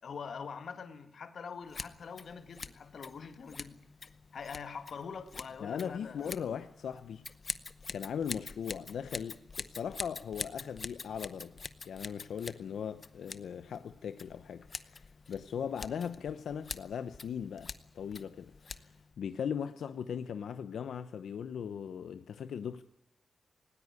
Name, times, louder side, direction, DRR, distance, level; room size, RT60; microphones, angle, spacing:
voice 1, 0.0-3.8 4.3-6.4 15.6-15.7, left 6 dB, 55° left, 1.9 m, -44 dB
Scissors, 1.7-19.2, left 4 dB, 35° left, 0.8 m, -46 dB
voice 2, 5.6-7.2 7.9-11.6 11.9-22.8, left 7 dB, 80° left, 0.8 m, -39 dB
19.0 x 18.5 x 9.7 m
wide cardioid pair, 170°, 0 cm